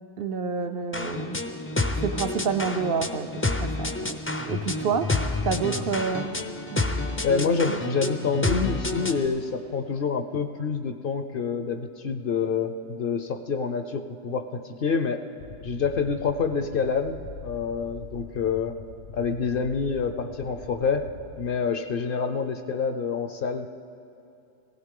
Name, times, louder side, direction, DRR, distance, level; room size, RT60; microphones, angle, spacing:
voice 1, 0.2-1.4 2.0-4.2 4.5-5.1 5.4-6.3 6.7-6.8 7.7-7.8, right 5 dB, 60° right, 8 dB, 0.7 m, -28 dB
sound 1, 0.9-9.3, left 2 dB, 20° left, 0.3 m, -29 dB
voice 2, 7.2-15.2 15.6-18.8 19.1-21.0 21.4-23.7, left 5 dB, 55° left, 8 dB, 0.7 m, -27 dB
sound 2, 15.4-21.4, left 4 dB, 80° left, 1.2 m, -44 dB
18.5 x 16.0 x 3.7 m, 2.7 s
omnidirectional pair, 1.2 m